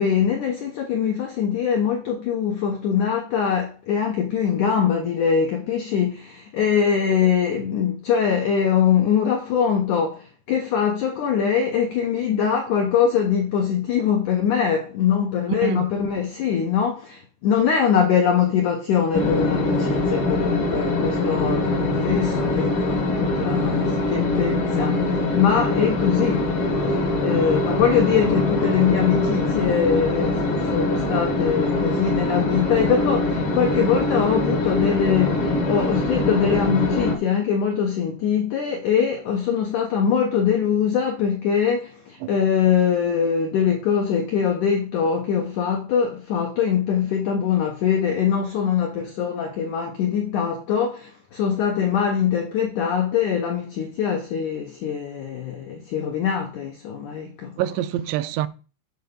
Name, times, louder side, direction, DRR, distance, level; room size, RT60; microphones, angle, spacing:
voice 1, 0.0-57.6, left 7 dB, 80° left, 1.8 m, -23 dB
sound 1, 19.1-37.1, left 2 dB, 65° left, 1.4 m, -23 dB
voice 2, 23.4-23.7 42.2-42.3 57.6-58.5, right 12 dB, 85° right, 2.8 m, -27 dB
8.2 x 4.0 x 6.8 m
omnidirectional pair, 5.0 m